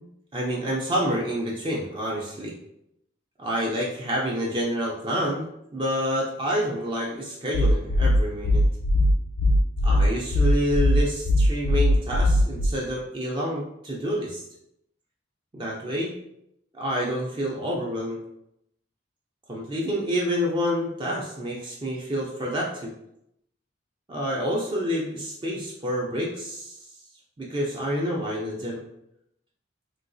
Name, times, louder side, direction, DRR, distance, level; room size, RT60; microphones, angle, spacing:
voice 1, 0.0-2.5 3.4-8.6 9.8-14.4 15.5-16.1 16.7-18.2 19.5-22.9 24.1-26.8 27.4-28.8, equal, 25° right, -3 dB, 0.4 m, -28 dB
sound 1, 7.5-12.7, left 1 dB, 85° left, 0.4 m, -20 dB
3.8 x 2.3 x 2.5 m, 0.79 s
head